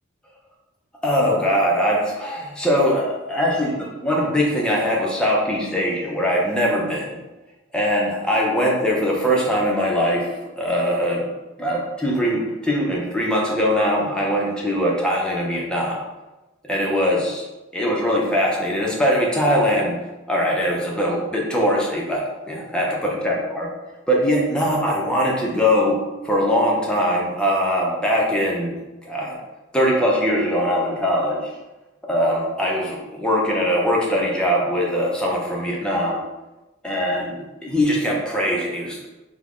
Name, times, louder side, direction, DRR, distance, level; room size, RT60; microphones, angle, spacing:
voice 1, 1.0-7.2 7.7-11.3 11.6-16.0 16.7-17.4 17.7-20.0 20.3-23.7 24.1-28.7 29.0-29.4 29.7-31.5 32.1-36.2 36.8-39.0, equal, 5° left, -3 dB, 0.5 m, -21 dB
3.4 x 2.1 x 3.5 m, 1.1 s
head